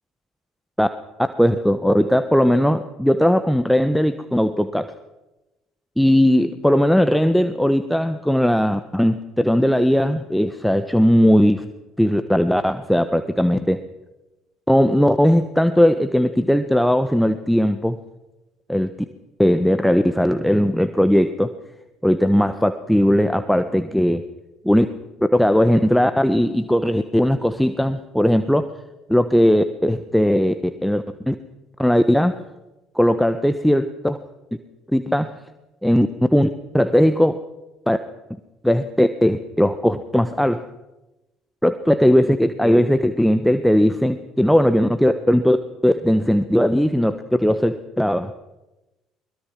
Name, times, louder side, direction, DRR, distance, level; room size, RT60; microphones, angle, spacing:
voice 1, 1.2-4.9 6.0-11.6 12.0-13.8 14.7-18.0 18.7-18.9 19.4-21.5 22.0-24.2 24.6-24.9 25.3-28.7 29.1-31.3 31.8-32.4 32.9-34.2 34.9-35.3 35.8-37.4 37.9-38.0 38.6-40.7 41.6-45.6 45.8-48.3, equal, ahead, 9 dB, 1.2 m, -18 dB
23.0 x 21.5 x 6.1 m, 0.99 s
figure-of-eight pair, 55°, 0 cm